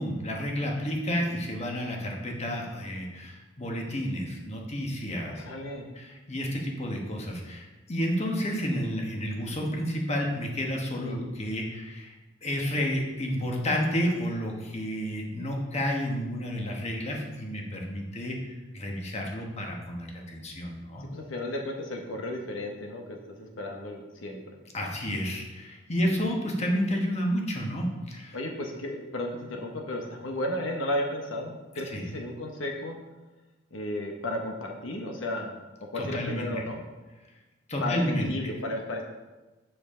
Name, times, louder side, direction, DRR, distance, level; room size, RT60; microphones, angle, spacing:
voice 1, 0.0-5.4 5.9-12.2 12.4-21.0 24.7-28.4 31.9-32.0 35.9-36.5 37.7-38.5, equal, 35° left, 0 dB, 1.3 m, -31 dB
voice 2, 5.3-5.9 11.0-11.2 21.1-24.6 26.0-26.1 28.3-33.0 33.7-35.6 35.9-36.8 37.8-39.0, left 1 dB, 80° left, 2 dB, 1.0 m, -34 dB
7.9 x 7.0 x 3.8 m, 1.1 s
head